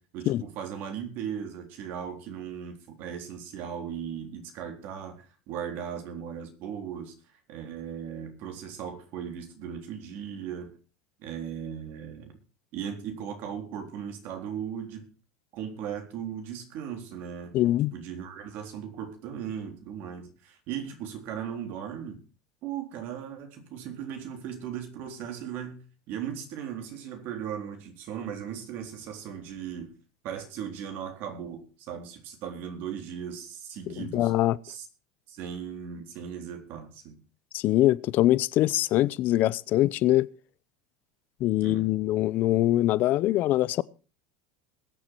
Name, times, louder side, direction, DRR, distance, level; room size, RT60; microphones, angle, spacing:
voice 1, 0.0-7.1 7.5-10.8 11.2-12.4 12.7-15.1 15.5-17.6 17.9-22.2 22.6-29.9 30.2-34.3 34.6-34.9 35.3-37.2 41.6-41.9, right 8 dB, 55° right, 3.8 m, -37 dB
voice 2, 17.5-17.9 33.9-34.6 37.5-40.3 41.4-43.8, left 15 dB, 50° left, 0.7 m, -23 dB
21.0 x 7.3 x 4.6 m
supercardioid pair, 120°, 4 cm